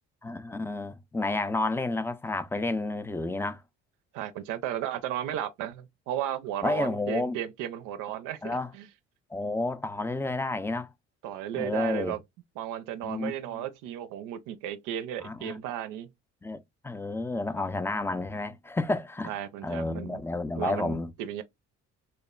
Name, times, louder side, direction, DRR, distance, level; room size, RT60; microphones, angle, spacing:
voice 1, 0.2-3.6 6.6-7.4 8.4-8.7 9.3-10.9 11.6-12.2 13.0-13.6 15.2-15.6 16.4-19.4 19.6-21.1, left 2 dB, 10° left, 0.3 m, -31 dB
voice 2, 4.1-8.9 11.2-12.2 12.6-16.1 19.3-20.2 20.6-21.4, right 11 dB, 75° right, 0.5 m, -34 dB
3.1 x 2.0 x 2.2 m
supercardioid pair, 60°, 32 cm